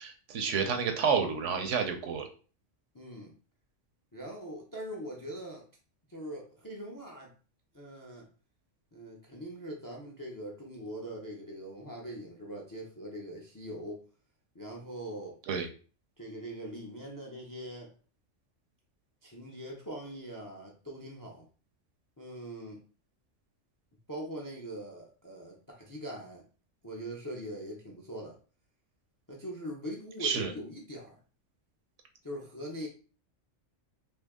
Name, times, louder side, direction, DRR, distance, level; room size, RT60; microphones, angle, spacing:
voice 1, 0.0-2.3 15.5-15.7 30.2-30.5, right 6 dB, 75° right, 1.0 m, -29 dB
voice 2, 2.9-3.3 4.1-5.7 6.1-7.3 7.7-8.3 8.9-14.0 14.5-15.4 16.2-17.9 19.2-21.5 22.2-22.8 24.1-26.5 26.8-28.4 29.3-31.2 32.2-32.9, equal, 30° left, 0.3 m, -42 dB
2.8 x 2.7 x 3.5 m
omnidirectional pair, 1.3 m